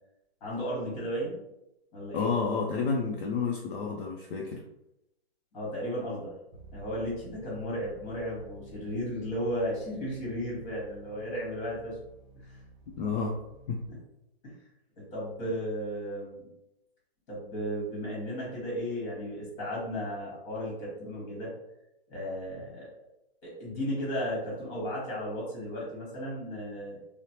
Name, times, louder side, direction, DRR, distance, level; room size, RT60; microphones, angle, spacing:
voice 1, 0.4-1.4 1.9-2.3 5.5-6.3 6.7-11.9 12.4-12.6 14.4-14.6 15.1-16.5 17.3-21.5 22.1-22.9 23.4-27.0, equal, 30° left, -4 dB, 1.3 m, -34 dB
voice 2, 2.1-4.6 13.0-13.4 13.7-13.8, left 5 dB, 60° left, -2 dB, 0.5 m, -30 dB
sound 1, 6.5-13.9, right 2 dB, 35° right, 0.6 m, -52 dB
3.0 x 2.0 x 2.8 m, 0.86 s
hypercardioid pair, 155°, 32 cm